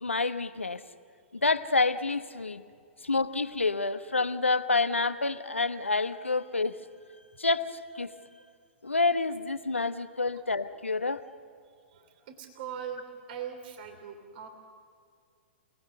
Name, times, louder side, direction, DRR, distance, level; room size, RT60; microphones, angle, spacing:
voice 1, 0.0-0.8 1.3-2.6 3.0-6.8 7.4-8.1 8.8-11.2, left 3 dB, 85° left, 11 dB, 1.1 m, -28 dB
voice 2, 11.6-14.5, right 8 dB, 50° right, 6 dB, 3.0 m, -41 dB
29.0 x 19.0 x 6.8 m, 2.3 s
figure-of-eight pair, 110°, 6 cm